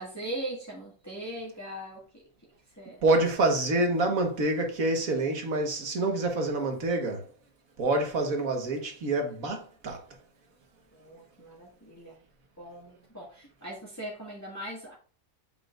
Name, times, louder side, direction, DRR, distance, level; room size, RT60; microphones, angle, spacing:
voice 1, 0.0-2.0 2.8-3.0 10.9-12.1 12.6-14.9, right 1 dB, 10° left, 1.8 m, -40 dB
voice 2, 3.0-7.3 7.8-10.0, right 2 dB, 85° right, 1.9 m, -27 dB
7.4 x 5.5 x 2.5 m
omnidirectional pair, 1.4 m